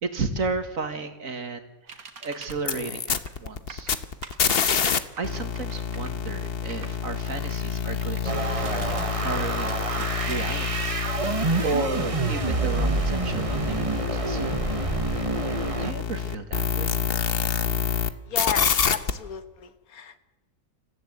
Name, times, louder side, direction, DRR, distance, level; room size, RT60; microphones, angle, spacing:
voice 1, 0.0-1.7 2.2-3.9 5.2-11.0 11.2-14.6 15.8-17.0, right 4 dB, 70° right, 8 dB, 2.2 m, -33 dB
sound 1, 1.9-2.6 3.1-3.4 3.7-7.0 8.0-9.1 9.6-11.5, right 5 dB, 85° right, 2.1 m, -44 dB
sound 2, 2.5-5.0 5.2-18.1 18.3-19.1, left 7 dB, 45° left, 1.1 m, -28 dB
sound 3, 8.2-15.9, right 3 dB, 25° right, 1.0 m, -28 dB
voice 2, 18.3-20.2, left 8 dB, 90° left, 12 dB, 1.7 m, -34 dB
25.5 x 15.0 x 8.1 m, 1.1 s
omnidirectional pair, 1.5 m